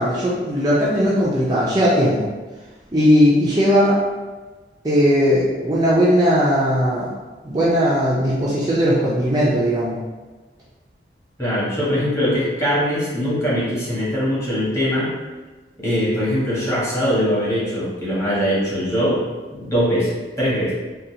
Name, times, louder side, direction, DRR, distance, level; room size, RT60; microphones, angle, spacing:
voice 1, 0.0-2.3 2.9-4.0 4.8-7.1 7.4-10.0, equal, 25° right, -8 dB, 0.5 m, -18 dB
voice 2, 11.4-15.1 15.8-19.2 19.5-20.7, equal, 15° left, -9 dB, 1.3 m, -21 dB
3.8 x 2.3 x 2.7 m, 1.3 s
head